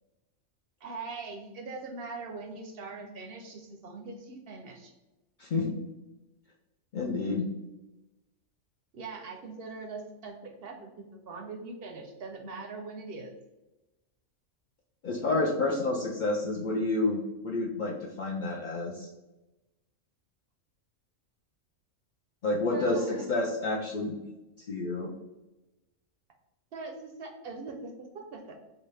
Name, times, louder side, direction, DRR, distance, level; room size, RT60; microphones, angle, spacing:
voice 1, 0.8-4.9 8.9-13.3 22.7-23.2 26.7-28.6, right 3 dB, 65° right, 2 dB, 0.7 m, -41 dB
voice 2, 5.4-5.7 6.9-7.5 15.0-19.1 22.4-24.2 24.6-25.1, left 2 dB, 60° left, -2 dB, 0.5 m, -29 dB
4.0 x 2.3 x 3.2 m, 1.0 s
omnidirectional pair, 1.3 m